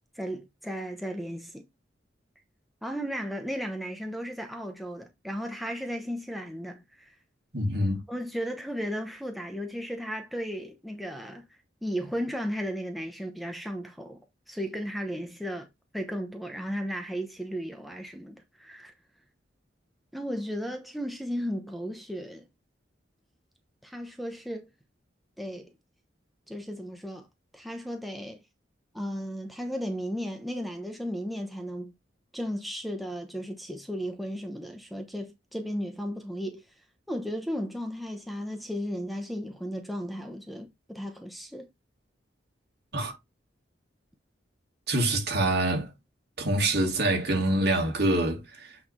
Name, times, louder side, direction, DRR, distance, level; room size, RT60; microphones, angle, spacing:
voice 1, 0.1-1.6 2.8-7.1 8.1-11.4 11.8-14.2 14.5-15.7 15.9-18.9 20.1-22.4 23.8-24.7 25.4-25.7 26.5-27.3 27.5-28.4 28.9-31.9 32.3-36.6 37.1-41.7, equal, ahead, 1.0 m, -35 dB
voice 2, 7.5-8.0 42.9-43.2 44.9-45.9 46.4-48.8, right 1 dB, 65° right, 2.4 m, -26 dB
8.4 x 3.4 x 4.2 m
head